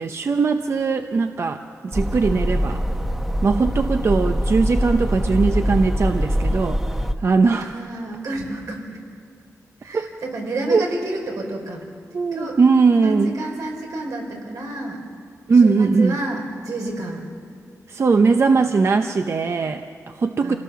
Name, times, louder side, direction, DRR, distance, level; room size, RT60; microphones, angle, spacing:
voice 1, 0.0-2.8 3.4-6.8 7.2-7.7 9.9-10.1 10.7-10.9 12.1-13.3 15.5-16.2 17.9-20.5, right 4 dB, 50° right, 6 dB, 0.7 m, -19 dB
sound 1, 1.9-7.1, equal, 5° right, 0.9 m, -23 dB
voice 2, 7.6-9.0 9.8-11.8 12.3-12.6 13.0-15.0 15.6-17.3 20.4-20.6, right 2 dB, 85° right, 0 dB, 4.5 m, -30 dB
27.0 x 17.5 x 6.9 m, 2.3 s
wide cardioid pair, 130°, 6 cm